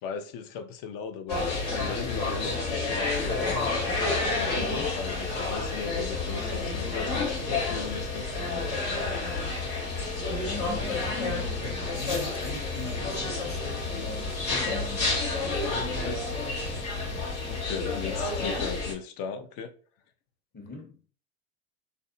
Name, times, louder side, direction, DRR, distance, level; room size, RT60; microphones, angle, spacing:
voice 1, 0.0-3.6 4.3-8.3 15.4-16.2 17.5-19.7, left 6 dB, 55° left, 0.6 m, -37 dB
sound 1, 1.3-18.9, left 3 dB, 70° left, 1.3 m, -30 dB
voice 2, 4.5-4.9 10.4-11.4 11.9-15.1 20.5-21.0, left 3 dB, 25° left, 0.8 m, -41 dB
2.5 x 2.1 x 2.6 m
hypercardioid pair, 80°, 41 cm